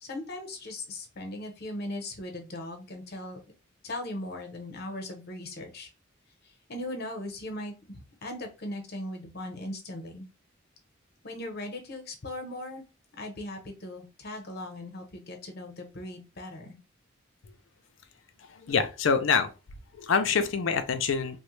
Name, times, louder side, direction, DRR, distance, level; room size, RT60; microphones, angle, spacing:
voice 1, 0.0-3.4 3.8-5.9 6.7-10.3 11.2-12.8 13.1-16.8, left 1 dB, 55° left, 0.9 m, -38 dB
voice 2, 18.5-19.5 20.0-21.4, left 5 dB, 80° left, 0.5 m, -26 dB
3.0 x 2.1 x 3.1 m
head